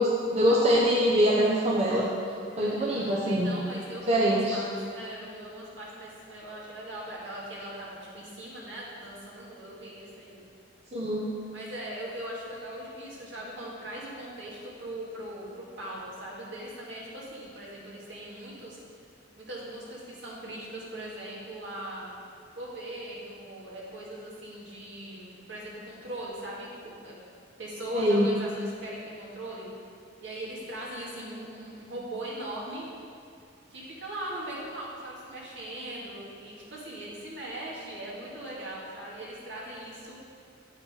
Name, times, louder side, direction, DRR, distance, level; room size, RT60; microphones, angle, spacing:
voice 1, 0.0-2.1 2.6-3.5 4.1-4.6 10.9-11.2 27.9-28.3, equal, 35° right, -5 dB, 0.8 m, -23 dB
voice 2, 2.4-10.4 11.5-18.8 19.4-22.1 22.5-27.2 27.6-29.7 30.2-32.8 33.7-40.2, right 1 dB, 70° right, -5 dB, 1.9 m, -40 dB
8.6 x 5.4 x 4.9 m, 2.3 s
head